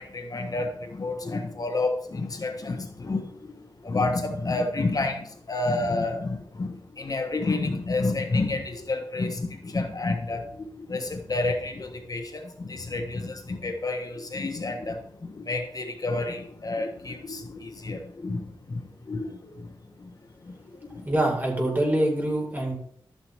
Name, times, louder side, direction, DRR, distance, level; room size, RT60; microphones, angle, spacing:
voice 1, 0.0-3.5 3.8-19.7 20.0-20.1 20.4-20.6 20.9-21.1, left 2 dB, 45° left, 5 dB, 1.2 m, -30 dB
voice 2, 21.0-22.7, right 1 dB, 20° right, 0 dB, 4.6 m, -24 dB
12.5 x 9.1 x 3.5 m, 0.65 s
wide cardioid pair, 95°, 9 cm